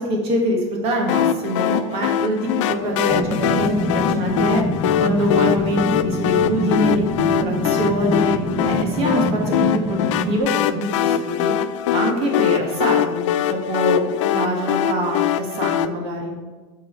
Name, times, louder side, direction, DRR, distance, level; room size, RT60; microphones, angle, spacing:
voice 1, 0.0-4.6 5.0-8.3 8.6-11.5 11.9-16.4, equal, 35° right, 0 dB, 1.6 m, -24 dB
sound 1, 1.1-15.9, left 10 dB, 75° left, 0.4 m, -22 dB
sound 2, 3.1-10.4, equal, 5° right, 0.8 m, -25 dB
7.3 x 3.9 x 4.5 m, 1.3 s
supercardioid pair, 140°, 16 cm